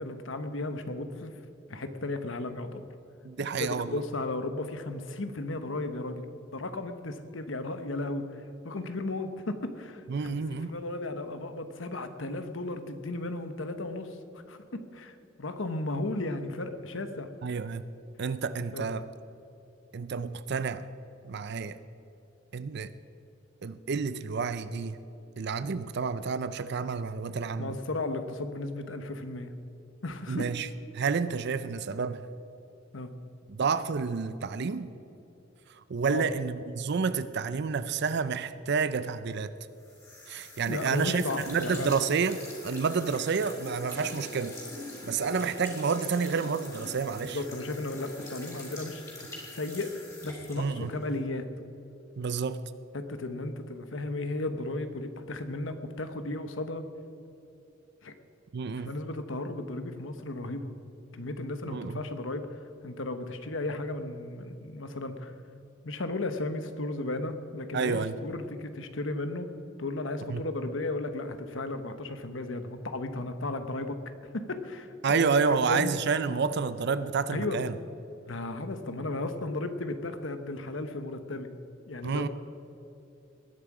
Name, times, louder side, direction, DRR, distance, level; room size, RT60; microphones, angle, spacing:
voice 1, 0.0-1.4 1.7-2.9 3.5-6.2 6.5-10.4 10.7-14.1 14.5-14.6 14.9-17.3 18.7-18.8 27.6-29.5 30.0-30.5 32.9-33.1 36.1-36.2 40.7-41.9 47.2-49.9 50.2-51.4 52.9-56.8 58.0-58.1 58.6-60.7 61.1-62.5 62.8-65.3 65.8-69.5 69.8-74.0 74.3-75.9 77.3-77.6 78.3-81.5 81.9-82.3, left 2 dB, 75° left, 9 dB, 1.1 m, -35 dB
voice 2, 3.2-4.0 10.1-10.7 17.4-17.9 18.2-19.0 19.9-20.9 21.2-21.8 22.5-22.9 23.6-25.0 25.4-27.8 30.3-30.7 30.9-32.3 33.5-34.9 35.9-39.5 40.3-44.5 45.0-47.4 50.6-50.9 52.2-52.6 58.5-59.0 61.7-62.0 67.7-68.2 70.3-70.5 75.0-77.7 82.0-82.3, right 5 dB, 60° right, 13 dB, 0.5 m, -29 dB
sound 1, 39.8-51.2, left 1 dB, 15° left, 3.8 m, -43 dB
19.5 x 11.0 x 4.9 m, 2.9 s
head